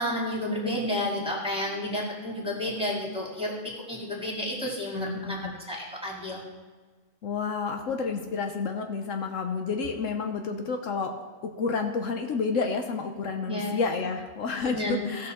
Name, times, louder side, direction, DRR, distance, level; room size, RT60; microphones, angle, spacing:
voice 1, 0.0-6.4 13.5-13.8 14.7-15.1, left 1 dB, 5° right, -3 dB, 2.2 m, -31 dB
voice 2, 4.9-5.6 7.2-11.1 11.6-15.3, left 4 dB, 70° left, 5 dB, 1.2 m, -30 dB
16.5 x 6.3 x 4.3 m, 1.4 s
omnidirectional pair, 1.4 m